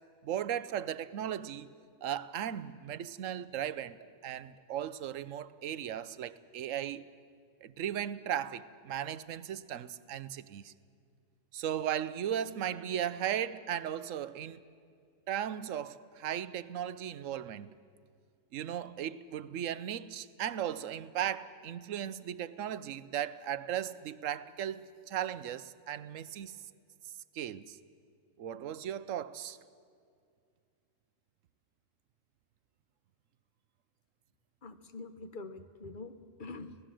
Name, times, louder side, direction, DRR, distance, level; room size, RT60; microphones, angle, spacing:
voice 1, 0.2-1.7 2.0-4.0 4.2-7.1 7.6-10.7 11.5-14.6 15.3-17.7 18.5-26.6 27.3-27.8 28.4-29.6, right 10 dB, 75° right, 1.1 m, -36 dB
voice 2, 34.6-36.8, left 3 dB, 40° left, 1.1 m, -45 dB
25.5 x 17.5 x 7.6 m
omnidirectional pair, 1.3 m